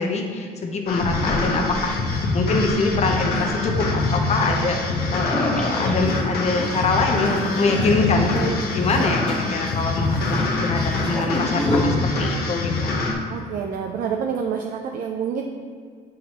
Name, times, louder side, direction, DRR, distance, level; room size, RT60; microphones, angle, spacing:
voice 1, 0.0-1.9 2.3-4.8 5.1-13.0, left 3 dB, 40° left, 3 dB, 0.8 m, -24 dB
sound 1, 0.9-13.1, left 3 dB, 65° left, 1.1 m, -25 dB
sound 2, 1.0-3.8 4.4-11.8, left 1 dB, 5° left, 1.2 m, -30 dB
voice 2, 13.3-15.4, right 7 dB, 55° right, 2 dB, 0.5 m, -27 dB
7.0 x 4.7 x 3.0 m, 2.1 s
cardioid pair, 110°, 17 cm